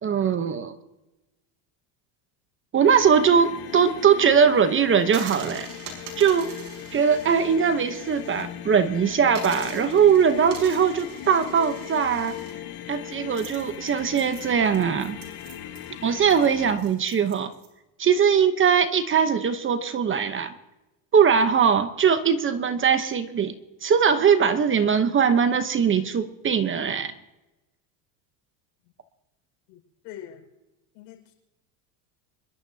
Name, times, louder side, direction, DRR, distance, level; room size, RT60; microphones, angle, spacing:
voice 1, 0.0-0.7 2.7-5.7 6.2-6.5 6.9-12.4 12.9-15.2 16.0-17.5 18.0-20.5 21.1-23.5 23.8-27.1, right 7 dB, 25° right, 10 dB, 0.9 m, -21 dB
sound 1, 2.8-16.8, left 11 dB, 45° left, 1.5 m, -39 dB
sound 2, 5.0-8.4 8.8-8.9 9.3-17.7, right 7 dB, 75° right, 5.5 m, -44 dB
voice 2, 29.7-30.5 30.9-31.3, left 10 dB, 80° left, 2 dB, 5.5 m, -44 dB
27.0 x 12.5 x 2.8 m, 1.0 s
supercardioid pair, 125°, 49 cm